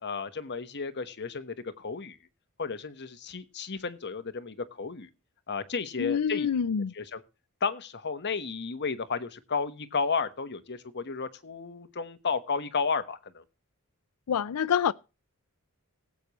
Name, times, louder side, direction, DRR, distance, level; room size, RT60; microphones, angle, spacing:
voice 1, 0.0-2.2 2.6-5.1 5.5-6.5 7.0-7.2 7.6-13.4, left 5 dB, 50° left, 1.2 m, -33 dB
voice 2, 6.0-6.9 14.3-14.9, left 7 dB, 90° left, 0.5 m, -26 dB
18.0 x 8.4 x 3.0 m
head